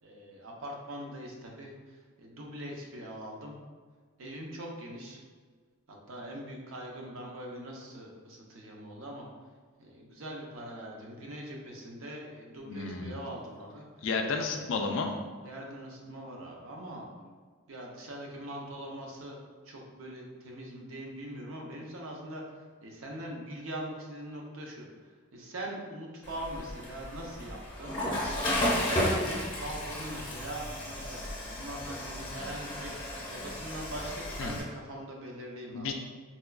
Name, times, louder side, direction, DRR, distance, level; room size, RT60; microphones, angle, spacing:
voice 1, 0.0-3.5 4.2-5.2 5.9-9.3 9.8-13.8 15.4-17.4 17.7-19.4 19.6-24.9 25.3-28.0 28.5-33.0 33.3-35.9, right 1 dB, 65° right, -1 dB, 0.6 m, -42 dB
voice 2, 12.7-13.1 14.0-15.1 34.4-34.5 35.7-35.9, left 4 dB, 55° left, 4 dB, 0.3 m, -32 dB
Water / Toilet flush, 26.2-34.6, left 1 dB, 20° left, 0.7 m, -34 dB
4.2 x 2.3 x 2.2 m, 1.5 s
head